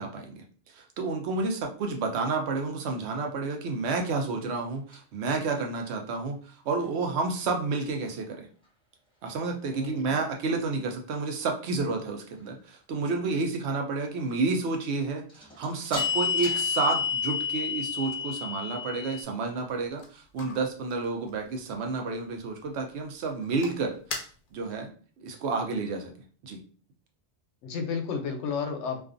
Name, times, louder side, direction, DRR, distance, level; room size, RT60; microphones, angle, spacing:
voice 1, 0.0-8.5 9.2-24.2 24.5-24.9 25.2-26.1 26.4-26.6, right 3 dB, 70° right, 4 dB, 0.8 m, -30 dB
sound 1, 4.9-5.0 15.3-19.2, left 6 dB, 5° left, 0.7 m, -30 dB
voice 2, 9.7-10.2 27.6-29.0, left 5 dB, 90° left, 5 dB, 0.9 m, -32 dB
sound 2, 19.6-24.9, left 4 dB, 55° left, 0.6 m, -45 dB
2.4 x 2.3 x 2.5 m, 0.42 s
omnidirectional pair, 1.2 m